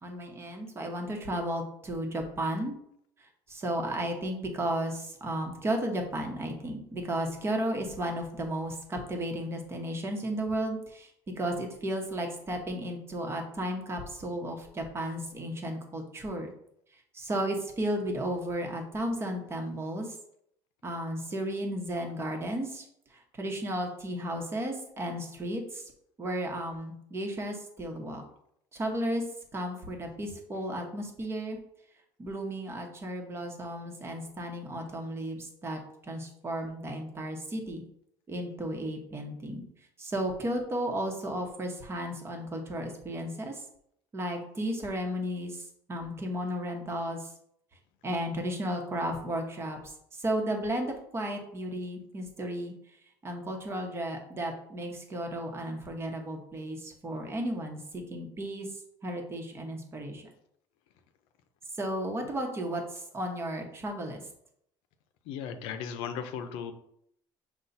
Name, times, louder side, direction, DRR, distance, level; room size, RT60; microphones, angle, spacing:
voice 1, 0.0-2.7 3.5-11.1 11.4-16.5 17.1-20.1 20.8-22.8 23.4-25.8 26.2-28.2 28.7-29.2 29.5-31.6 32.2-37.8 38.3-39.6 40.0-43.5 44.1-45.6 45.9-47.3 48.0-49.8 50.2-52.7 53.2-58.7 59.0-60.2 61.8-64.2, right 1 dB, 30° right, 3 dB, 1.0 m, -34 dB
voice 2, 65.2-66.7, left 7 dB, 85° left, 8 dB, 0.5 m, -36 dB
5.6 x 2.3 x 4.0 m, 0.72 s
cardioid pair, 110°, 9 cm